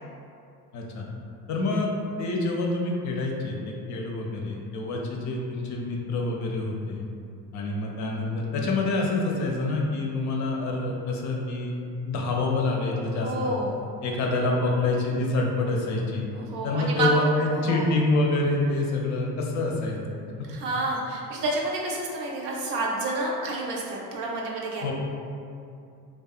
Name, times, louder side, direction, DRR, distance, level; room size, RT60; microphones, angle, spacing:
voice 1, 0.7-1.1 1.5-1.9 2.2-7.0 7.5-11.7 12.0-13.6 14.0-16.3 16.6-20.0 20.4-20.5 24.8-24.9, left 2 dB, 40° left, -1 dB, 0.4 m, -27 dB
voice 2, 13.2-13.8 16.3-17.3 17.5-17.9 20.4-24.8, right 2 dB, 85° right, -2 dB, 0.6 m, -29 dB
2.7 x 2.2 x 2.3 m, 2.5 s
hypercardioid pair, 70°, 47 cm